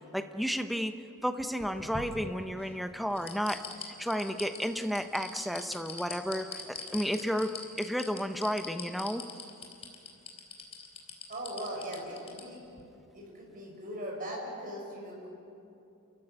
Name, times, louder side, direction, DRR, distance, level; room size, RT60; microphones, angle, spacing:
voice 1, 0.1-0.9 1.2-7.5 7.8-9.2, equal, ahead, 7 dB, 1.0 m, -32 dB
sound 1, 1.4-2.7 3.1-12.4 12.8-12.9, left 4 dB, 30° left, 3.5 m, -42 dB
voice 2, 11.3-12.6 13.1-15.3, equal, 40° right, -2 dB, 6.5 m, -39 dB
30.0 x 15.0 x 10.0 m, 2.7 s
head